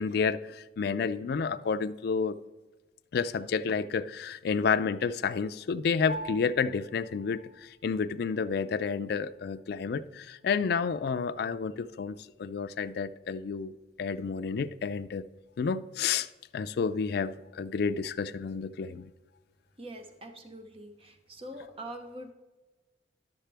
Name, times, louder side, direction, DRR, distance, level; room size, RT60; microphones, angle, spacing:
voice 1, 0.0-2.4 3.1-15.2 15.6-16.3 16.5-19.1, left 5 dB, 60° left, 0.3 m, -30 dB
Piano, 6.1-15.7, right 2 dB, 75° right, 3.2 m, -49 dB
voice 2, 19.8-22.3, right 1 dB, 30° right, 0.9 m, -44 dB
11.5 x 6.5 x 3.4 m
head